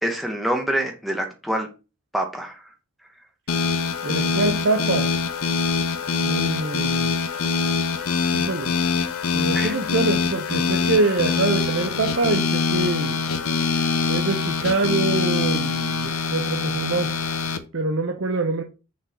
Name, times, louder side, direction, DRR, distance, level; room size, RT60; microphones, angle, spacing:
voice 1, 0.0-1.7 2.1-2.6 9.5-9.7, right 1 dB, ahead, 0.8 m, -26 dB
sound 1, 3.5-17.6, left 5 dB, 80° left, 0.8 m, -24 dB
voice 2, 4.0-5.2 6.2-7.2 8.3-8.8 9.3-13.2 14.1-17.1 17.7-18.6, right 3 dB, 60° right, 0.7 m, -25 dB
6.3 x 3.8 x 4.2 m
head